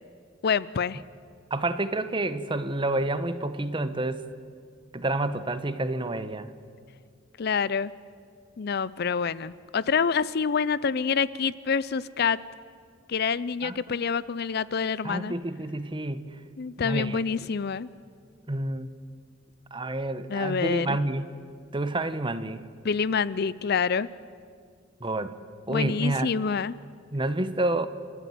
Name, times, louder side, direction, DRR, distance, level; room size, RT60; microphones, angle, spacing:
voice 1, 0.4-1.0 7.4-7.9 8.6-12.4 13.1-15.4 16.6-17.9 20.3-21.0 22.8-24.1 25.7-26.8, left 6 dB, 55° left, 19 dB, 0.5 m, -27 dB
voice 2, 1.5-4.2 4.9-6.5 13.6-14.0 15.0-16.3 16.8-17.2 18.5-18.9 19.7-21.3 21.7-22.6 25.0-25.4 25.7-26.3 27.1-27.9, right 2 dB, 25° right, 12 dB, 1.0 m, -29 dB
29.5 x 13.5 x 9.3 m, 2.1 s
head